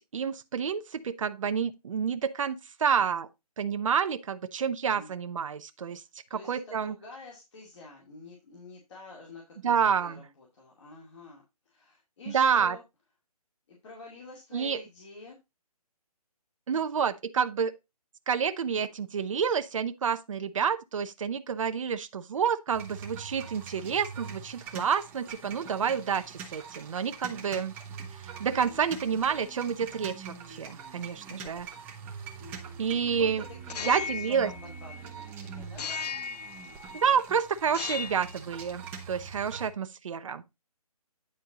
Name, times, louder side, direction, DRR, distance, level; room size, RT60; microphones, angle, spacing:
voice 1, 0.1-3.3 3.6-6.0 6.3-6.9 9.6-10.2 12.3-12.8 14.5-14.8 16.7-17.7 18.3-27.7 28.2-31.7 32.8-33.4 33.8-34.5 36.9-40.4, right 7 dB, 55° right, 0.8 m, -29 dB
voice 2, 5.9-12.8 13.7-15.4 27.2-27.6 32.4-32.8 33.2-35.9, left 3 dB, 45° left, 2.5 m, -48 dB
sound 1, 22.7-39.7, right 6 dB, 10° right, 0.7 m, -43 dB
sound 2, 33.6-35.2 35.8-37.1 37.6-38.4, left 6 dB, 90° left, 0.4 m, -37 dB
9.6 x 4.4 x 3.9 m
hypercardioid pair, 160°, 20 cm